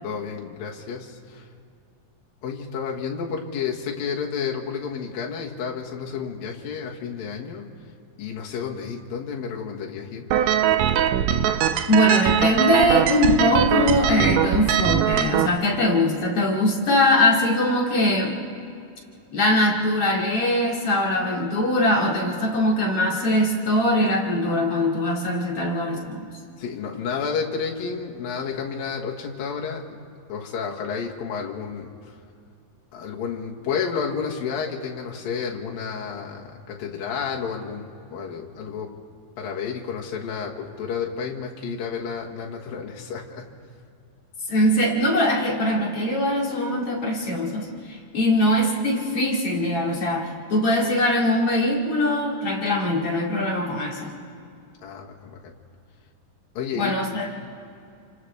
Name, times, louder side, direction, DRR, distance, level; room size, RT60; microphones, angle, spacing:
voice 1, 0.0-1.5 2.4-7.7 8.2-10.3 26.6-30.0 30.3-31.9 32.9-37.9 38.1-39.0 39.4-43.5 54.8-55.5 56.5-56.9, left 6 dB, 80° left, -1 dB, 3.3 m, -31 dB
sound 1, 10.3-15.5, right 10 dB, 85° right, 1.6 m, -21 dB
voice 2, 11.9-18.4 19.3-26.2 44.5-54.1 56.7-57.3, left 1 dB, 45° left, -2 dB, 2.9 m, -22 dB
30.0 x 25.5 x 3.4 m, 2.4 s
omnidirectional pair, 4.1 m